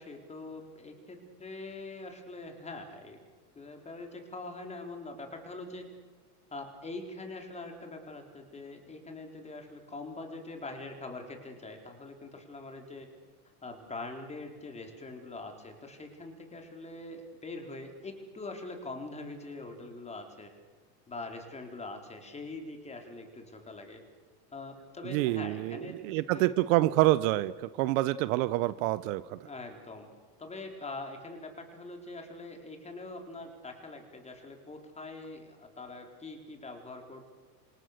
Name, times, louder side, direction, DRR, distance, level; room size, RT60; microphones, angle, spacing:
voice 1, 0.0-3.2 3.5-5.9 6.5-13.1 13.6-20.5 21.1-24.0 24.5-26.5 29.4-30.1 30.4-37.3, left 2 dB, 15° left, 4 dB, 4.2 m, -43 dB
voice 2, 25.0-27.5 27.8-29.4, right 17 dB, 55° right, 15 dB, 1.0 m, -27 dB
27.5 x 26.0 x 6.7 m, 1.4 s
supercardioid pair, 135°, 46 cm